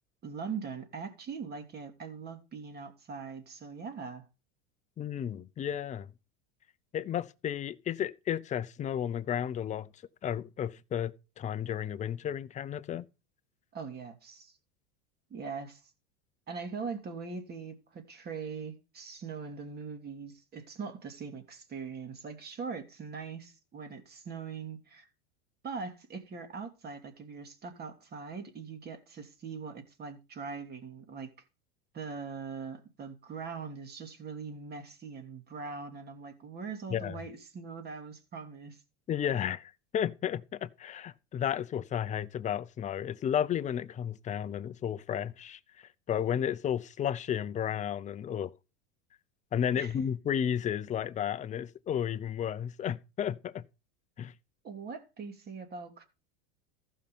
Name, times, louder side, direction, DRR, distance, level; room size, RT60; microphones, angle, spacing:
voice 1, 0.2-4.2 13.7-14.6 15.3-15.8 16.5-25.1 25.6-31.3 31.9-38.8 49.8-49.9 54.6-56.0, right 5 dB, 25° right, 2.8 m, -41 dB
voice 2, 5.0-6.1 6.9-9.9 10.2-13.0 36.9-37.2 39.1-48.5 49.5-53.6 54.2-54.3, left 9 dB, 20° left, 0.6 m, -33 dB
14.5 x 5.7 x 5.4 m
supercardioid pair, 140°, 35 cm